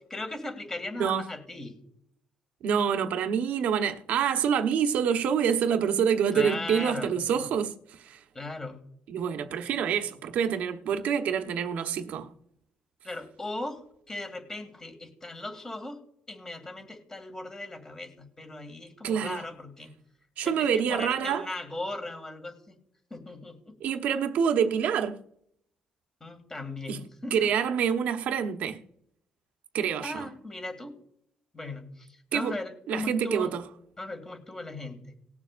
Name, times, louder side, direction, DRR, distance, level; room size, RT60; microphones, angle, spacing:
voice 1, 0.1-1.8 6.3-7.1 8.3-8.8 13.0-13.8 14.1-16.0 16.3-19.9 20.4-22.7 23.1-23.6 26.2-27.5 30.0-30.9 31.5-33.5 34.0-35.0, left 2 dB, 20° left, 2.2 m, -38 dB
voice 2, 2.6-8.2 9.1-12.3 19.0-19.5 20.4-21.5 23.8-25.2 26.9-28.8 29.7-30.3 32.3-32.6 32.9-33.6, right 7 dB, 75° right, 1.1 m, -27 dB
19.5 x 7.2 x 2.5 m
cardioid pair, 120°, 3 cm